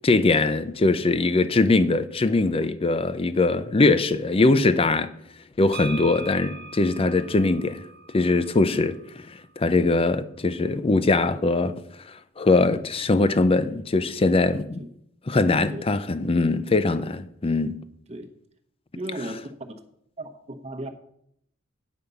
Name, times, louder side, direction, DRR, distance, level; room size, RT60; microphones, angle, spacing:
voice 1, 0.0-5.1 5.6-7.8 8.1-8.9 9.6-11.8 12.4-14.8 15.3-17.8, left 3 dB, 25° left, 0.5 m, -21 dB
sound 1, 5.7-9.5, right 2 dB, 50° right, 0.8 m, -41 dB
voice 2, 15.3-15.9 18.1-18.3 19.0-19.4 20.2-20.9, right 1 dB, 30° right, 1.0 m, -35 dB
9.4 x 5.1 x 6.9 m
head